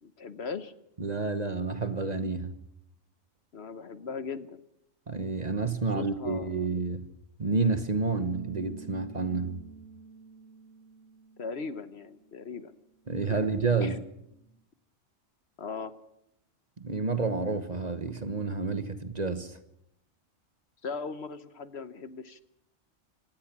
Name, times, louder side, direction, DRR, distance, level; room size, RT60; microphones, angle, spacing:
voice 1, 0.0-0.7 3.5-4.6 5.9-6.7 11.4-12.7 13.2-13.5 13.8-14.0 15.6-15.9 20.8-22.4, left 5 dB, 55° left, 1.2 m, -38 dB
voice 2, 1.0-2.5 5.1-7.1 7.4-9.6 13.1-14.0 16.8-19.6, right 4 dB, 35° right, 1.2 m, -29 dB
Bass guitar, 8.3-14.6, right 5 dB, 70° right, 2.4 m, -52 dB
24.5 x 18.5 x 6.1 m
omnidirectional pair, 1.3 m